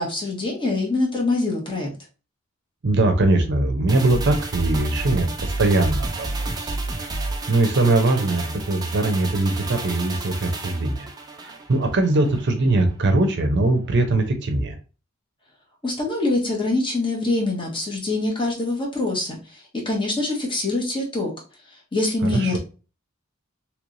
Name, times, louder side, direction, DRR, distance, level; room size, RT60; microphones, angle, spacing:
voice 1, 0.0-1.9 15.8-21.3 21.9-22.6, left 2 dB, 25° left, -2 dB, 1.2 m, -24 dB
voice 2, 2.8-6.3 6.6-6.7 7.5-11.1 11.4-14.8 22.2-22.6, right 2 dB, 60° right, 6 dB, 0.6 m, -21 dB
sound 1, 3.9-12.5 12.8-12.9, right 2 dB, 20° right, 0.5 m, -31 dB
3.2 x 3.0 x 2.5 m, 0.34 s
head